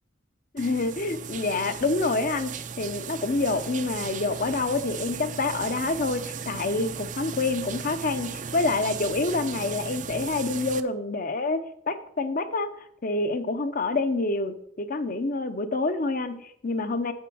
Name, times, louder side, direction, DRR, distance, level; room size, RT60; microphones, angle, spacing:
voice 1, 0.5-12.7 13.0-17.1, left 3 dB, 45° left, 11 dB, 0.8 m, -27 dB
sound 1, 0.6-10.8, right 6 dB, 40° right, 0.5 m, -36 dB
8.4 x 7.4 x 6.2 m, 0.72 s
head